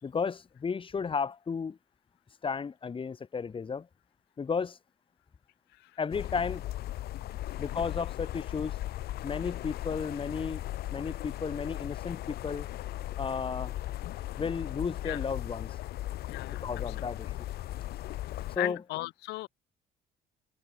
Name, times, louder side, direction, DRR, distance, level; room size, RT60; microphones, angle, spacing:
voice 1, 0.0-1.8 2.4-3.9 4.4-4.8 6.0-6.6 7.6-8.8 9.2-10.6 10.9-12.7 13.2-13.7 14.4-15.7 16.6-17.3 18.6-18.8, left 5 dB, 30° left, 4.2 m, -33 dB
sound 1, 6.1-18.6, left 14 dB, 70° left, 1.2 m, -37 dB
voice 2, 16.3-17.1 18.5-19.5, left 20 dB, 90° left, 1.5 m, -37 dB
cardioid pair, 110°, 17 cm